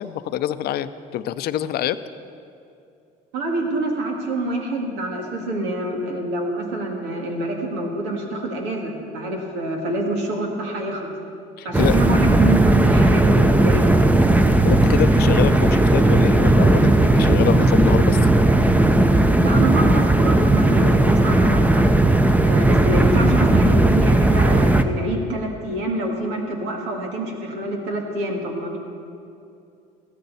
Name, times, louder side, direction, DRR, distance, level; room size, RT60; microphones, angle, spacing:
voice 1, 0.0-2.0 11.6-12.0 14.6-18.2, left 11 dB, 65° left, 13 dB, 0.6 m, -25 dB
voice 2, 3.3-11.1 11.6-14.2 19.4-21.9 22.4-28.8, right 1 dB, 85° right, 1 dB, 2.1 m, -26 dB
sound 1, 11.7-24.8, right 2 dB, 10° right, 0.8 m, -16 dB
15.5 x 13.0 x 4.2 m, 2.5 s
supercardioid pair, 75°, 17 cm